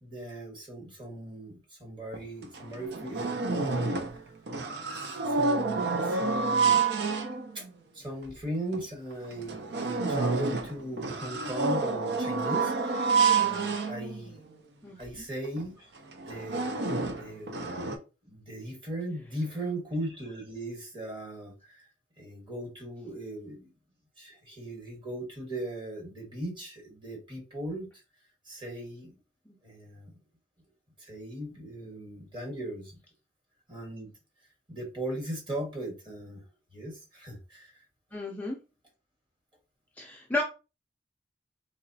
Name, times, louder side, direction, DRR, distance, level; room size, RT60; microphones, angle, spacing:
voice 1, 0.0-3.8 4.1-4.2 5.3-7.0 7.5-7.6 7.9-13.1 13.4-14.4 15.0-15.9 16.2-17.6 18.2-21.8 22.2-23.7 24.2-27.9 28.4-29.2 29.6-30.1 31.0-33.0 33.7-34.1 34.7-36.4 36.7-37.7, right 1 dB, 25° right, 1.3 m, -38 dB
sound 1, 2.1-2.2 2.5-4.2 4.5-7.7 8.3-8.4 8.7-8.8 9.3-14.5 15.0-15.1 15.4-15.6 16.1-18.0, right 4 dB, 65° right, 0.6 m, -28 dB
voice 2, 14.8-15.2 38.1-38.6 40.0-40.4, left 2 dB, 10° left, 0.5 m, -33 dB
3.9 x 3.0 x 2.7 m
head